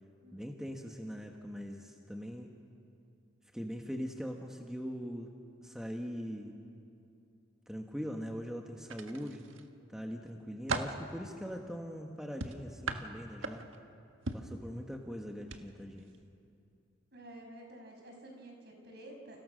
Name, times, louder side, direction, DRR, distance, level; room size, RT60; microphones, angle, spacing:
voice 1, 0.3-2.5 3.5-5.3 5.6-6.5 7.7-9.4 9.9-13.6 14.3-16.1, equal, 5° right, 1 dB, 1.4 m, -41 dB
sound 1, 8.8-9.7 10.2-11.0 12.4-13.8 14.3-14.6 15.4-15.6 16.0-16.2, right 3 dB, 80° right, 1.6 m, -38 dB
voice 2, 14.4-14.9 17.1-19.4, right 1 dB, 55° right, 2 dB, 6.1 m, -51 dB
29.5 x 29.0 x 6.4 m, 2.6 s
head